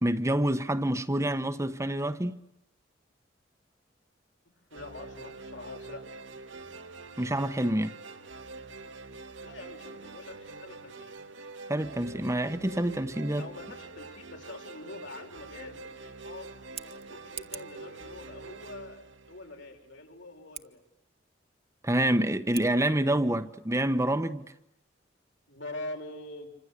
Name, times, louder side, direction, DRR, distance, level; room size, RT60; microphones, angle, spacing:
voice 1, 0.0-2.4 7.2-7.9 11.7-13.5 21.8-24.5, right 1 dB, 15° right, 1.1 m, -27 dB
voice 2, 4.7-6.0 9.4-11.2 13.4-16.5 16.8-20.8 25.5-26.5, left 2 dB, 75° left, 6.1 m, -44 dB
sound 1, 4.7-20.0, right 3 dB, 75° right, 1.9 m, -45 dB
Scissors, 16.5-17.8 20.5-20.7 22.5-22.7, right 9 dB, 35° right, 1.4 m, -43 dB
27.5 x 25.5 x 8.2 m
head